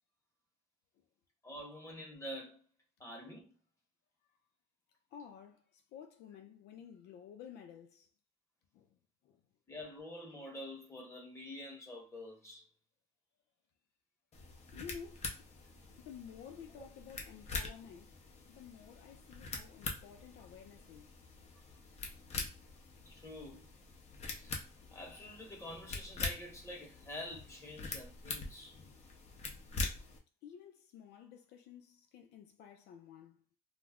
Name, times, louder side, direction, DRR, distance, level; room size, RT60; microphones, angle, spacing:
voice 1, 1.4-2.6 3.0-3.5 9.7-12.6 16.8-16.9 23.0-23.7 24.2-24.6 24.9-28.8, left 1 dB, 15° left, 1.0 m, -47 dB
voice 2, 5.1-8.1 8.7-8.9 9.2-9.4 14.7-15.3 16.0-18.1 18.5-21.2 30.4-33.4, left 7 dB, 80° left, 0.4 m, -52 dB
sound 1, 14.3-30.2, left 3 dB, 40° left, 0.6 m, -44 dB
2.4 x 2.0 x 3.4 m
cardioid pair, 110°, 17 cm